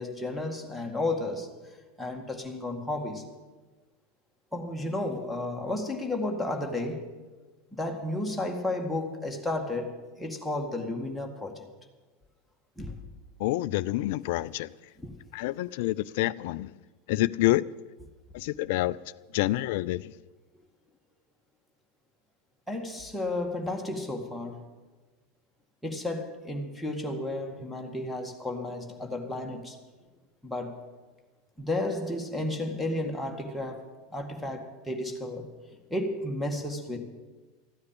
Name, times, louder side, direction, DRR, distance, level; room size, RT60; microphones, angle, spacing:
voice 1, 0.0-1.5 2.0-3.3 4.5-7.1 7.7-11.7 12.8-13.0 15.0-15.1 22.7-24.7 25.8-29.8 30.4-30.8 31.6-33.8 34.1-35.5 35.9-37.0, left 2 dB, ahead, 2.0 m, -32 dB
voice 2, 13.4-14.7 15.3-16.7 17.1-17.7 18.3-19.0 19.3-20.0, left 16 dB, 55° left, 0.4 m, -27 dB
14.0 x 9.6 x 8.8 m
figure-of-eight pair, 85°, 0 cm